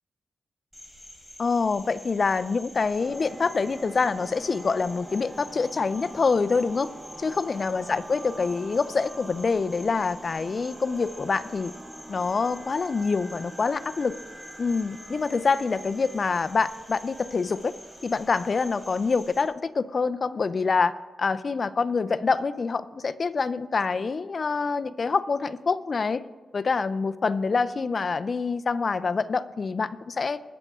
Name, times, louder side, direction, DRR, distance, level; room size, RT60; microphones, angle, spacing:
Cricket, 0.7-19.4, left 1 dB, 5° right, 4.7 m, -48 dB
voice 1, 1.4-6.9 7.2-11.7 12.1-14.2 14.6-17.7 18.0-26.2 26.5-30.4, left 4 dB, 50° left, 14 dB, 0.6 m, -26 dB
sound 1, 3.0-19.2, right 1 dB, 25° right, 1.0 m, -45 dB
20.5 x 8.1 x 3.7 m, 1.4 s
cardioid pair, 60°, 0 cm